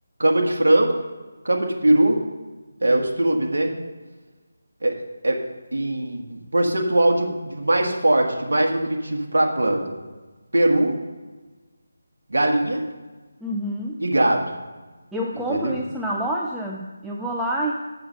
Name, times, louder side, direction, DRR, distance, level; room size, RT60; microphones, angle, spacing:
voice 1, 0.2-1.0 1.4-2.2 2.8-3.7 4.8-4.9 5.2-5.4 5.7-9.9 10.5-11.0 12.3-12.8 14.0-14.5 15.5-15.8, right 1 dB, 70° right, 1 dB, 1.4 m, -21 dB
voice 2, 13.4-14.0 15.1-17.7, right 1 dB, 5° right, -4 dB, 0.4 m, -27 dB
6.7 x 6.6 x 5.2 m, 1.3 s
figure-of-eight pair, 155°, 0 cm